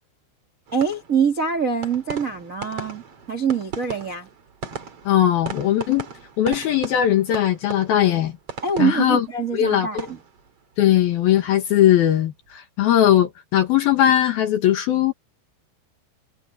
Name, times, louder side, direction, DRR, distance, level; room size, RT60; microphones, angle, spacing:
sound 1, 0.7-11.8 12.1-12.6, right 6 dB, 40° right, 2.6 m, -38 dB
voice 1, 0.7-4.3 8.6-10.2, right 6 dB, 80° right, 0.7 m, -24 dB
voice 2, 5.1-6.1 6.4-8.3 8.8-9.3 9.5-10.1 10.8-15.1, left 11 dB, 65° left, 2.5 m, -19 dB
omnidirectional pair, 5.9 m